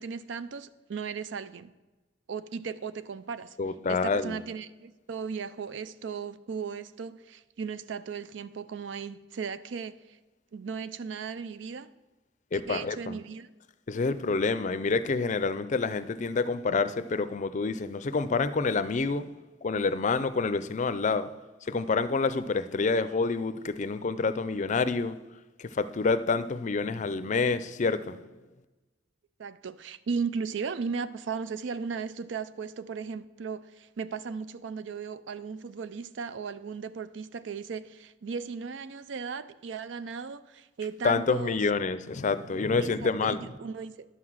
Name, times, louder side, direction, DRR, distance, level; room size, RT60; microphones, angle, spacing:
voice 1, 0.0-1.7 2.3-3.6 3.9-10.0 10.5-11.9 12.7-13.5 29.4-41.7 42.8-44.1, right 5 dB, 75° right, 0.5 m, -36 dB
voice 2, 3.6-4.4 12.5-13.2 13.9-19.3 19.6-21.3 21.6-25.2 25.6-28.3 41.0-43.5, left 4 dB, 40° left, 0.5 m, -28 dB
11.5 x 5.9 x 6.3 m
head